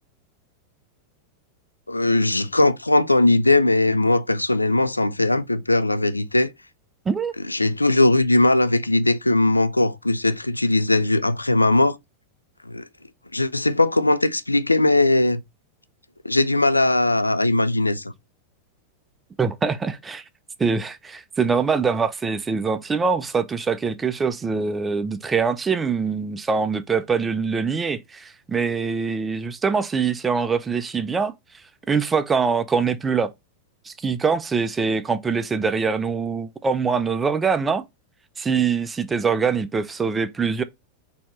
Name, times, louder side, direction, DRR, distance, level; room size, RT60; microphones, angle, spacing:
voice 1, 1.9-6.5 7.5-12.0 12.7-12.8 13.3-15.4 16.2-18.1, left 2 dB, 85° left, 0.3 m, -19 dB
voice 2, 19.4-20.2 20.6-31.3 31.9-33.3 33.9-37.8 38.4-40.6, right 5 dB, 15° right, 0.5 m, -23 dB
4.3 x 2.8 x 4.2 m
figure-of-eight pair, 90°, 0 cm